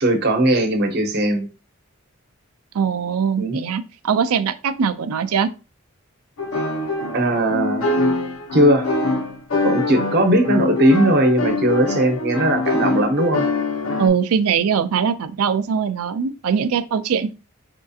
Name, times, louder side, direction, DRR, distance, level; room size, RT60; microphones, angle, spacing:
voice 1, 0.0-1.5 3.4-3.6 7.1-7.9 8.5-8.9 9.6-13.5, right 1 dB, 50° right, 0.8 m, -18 dB
voice 2, 2.7-5.5 14.0-17.3, right 7 dB, 85° right, 0.4 m, -21 dB
sound 1, 6.4-14.1, left 2 dB, 80° left, 0.7 m, -23 dB
4.4 x 2.7 x 2.4 m
head